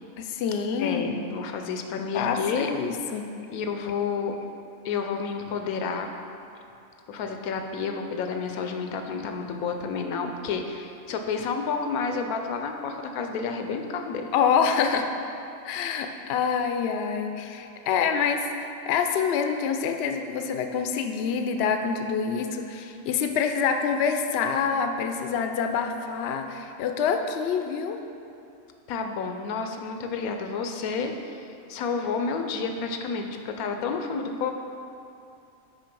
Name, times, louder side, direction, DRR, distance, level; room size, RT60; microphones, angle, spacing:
voice 1, 0.2-1.2 2.1-3.3 14.3-15.1 15.6-28.0, left 6 dB, 65° left, 6 dB, 0.6 m, -26 dB
voice 2, 0.8-2.7 3.5-4.4 4.8-6.1 7.1-14.3 28.9-34.5, left 5 dB, 90° left, 5 dB, 1.1 m, -30 dB
5.7 x 5.1 x 5.3 m, 2.7 s
omnidirectional pair, 1.5 m